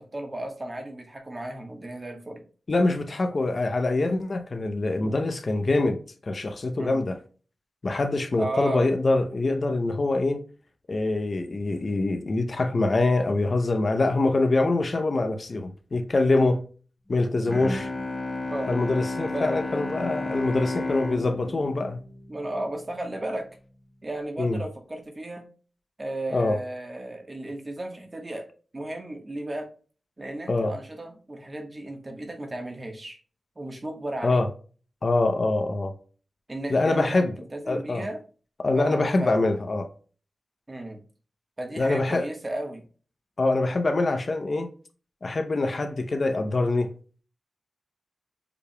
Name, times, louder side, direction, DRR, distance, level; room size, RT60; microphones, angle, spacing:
voice 1, 0.0-2.4 5.0-5.2 6.8-7.0 8.4-8.9 16.3-16.5 18.5-18.7 19.3-19.7 22.3-23.5 24.0-25.5 26.0-28.4 28.7-29.7 30.2-33.2 33.6-34.4 36.5-38.2 38.7-39.3 40.7-41.0 41.6-42.8, right 1 dB, 30° right, 1.3 m, -34 dB
voice 2, 2.7-6.0 6.3-7.2 7.8-10.5 10.9-16.6 17.1-17.9 18.7-22.0 24.4-24.6 26.3-26.6 30.5-30.7 34.2-34.5 35.0-35.9 36.7-37.3 37.7-38.0 38.6-39.9 41.8-42.3 43.4-44.7 45.2-46.9, left 2 dB, 50° left, 0.6 m, -24 dB
Bowed string instrument, 17.5-23.1, left 2 dB, 20° left, 0.8 m, -32 dB
6.9 x 3.4 x 2.2 m
wide cardioid pair, 75°, 0 cm